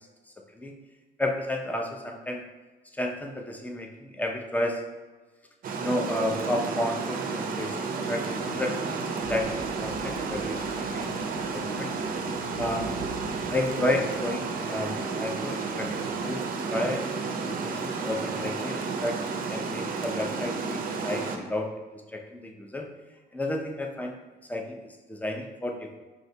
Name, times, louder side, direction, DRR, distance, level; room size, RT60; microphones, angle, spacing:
voice 1, 1.2-2.4 2.9-4.8 5.8-11.9 12.6-12.9 13.5-16.4 16.7-17.0 17.4-19.2 19.5-22.9 23.3-24.2 24.5-26.0, left 1 dB, 10° left, 3 dB, 0.5 m, -32 dB
Water, 5.6-21.4, right 4 dB, 50° right, 0.5 m, -32 dB
sound 1, 8.2-16.2, right 1 dB, 90° left, 1.2 m, -44 dB
4.8 x 3.2 x 2.7 m, 1.3 s
cardioid pair, 95°, 19 cm